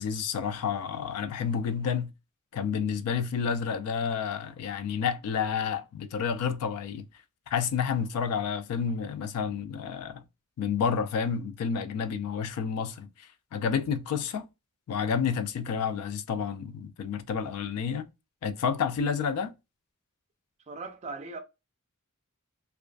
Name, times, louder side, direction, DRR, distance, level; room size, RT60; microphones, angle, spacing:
voice 1, 0.0-2.1 2.5-7.1 7.5-10.2 10.6-13.1 13.5-14.5 14.9-18.1 18.4-19.5, left 6 dB, 80° left, 0.3 m, -30 dB
voice 2, 20.7-21.4, right 3 dB, 30° right, 0.4 m, -38 dB
2.4 x 2.3 x 2.3 m
head